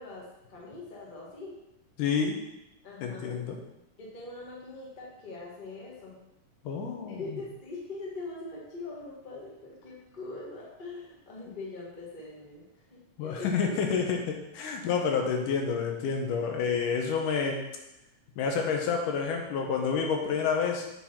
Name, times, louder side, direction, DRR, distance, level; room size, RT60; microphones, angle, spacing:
voice 1, 0.0-1.6 2.8-3.3 4.0-6.2 7.1-13.5 14.8-14.9, left 3 dB, 55° left, -4 dB, 0.5 m, -42 dB
voice 2, 2.0-2.4 3.0-3.6 6.6-7.2 13.2-17.6 18.4-20.8, left 6 dB, 75° left, 2 dB, 2.4 m, -29 dB
7.3 x 4.0 x 5.7 m, 0.90 s
omnidirectional pair, 4.0 m